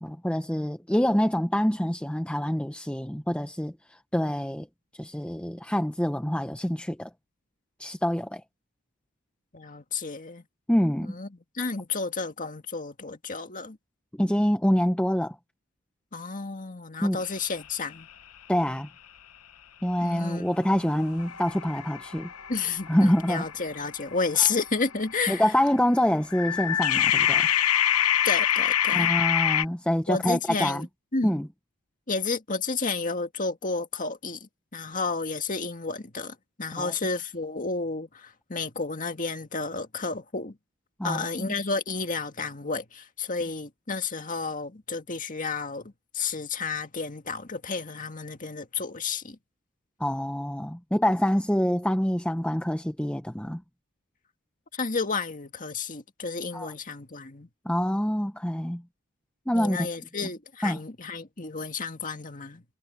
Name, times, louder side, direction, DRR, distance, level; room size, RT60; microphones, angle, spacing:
voice 1, 0.0-4.7 5.0-7.1 7.8-8.4 10.7-11.1 14.2-15.4 17.0-17.2 18.5-18.9 19.8-22.3 22.9-23.4 25.3-27.5 28.9-30.9 31.2-31.5 36.8-36.9 41.0-41.5 50.0-53.6 56.5-56.7 57.6-58.8 59.5-59.9 60.6-60.8, equal, 5° left, 0.8 m, -26 dB
voice 2, 9.5-10.4 11.0-11.3 11.5-13.8 16.1-18.1 20.0-20.4 22.5-25.4 28.2-29.1 30.1-30.9 31.1-31.4 32.1-40.6 41.0-49.4 54.7-57.5 59.5-62.6, left 4 dB, 35° left, 1.9 m, -31 dB
sound 1, 20.6-25.2 26.3-29.6, left 10 dB, 80° left, 1.0 m, -26 dB
head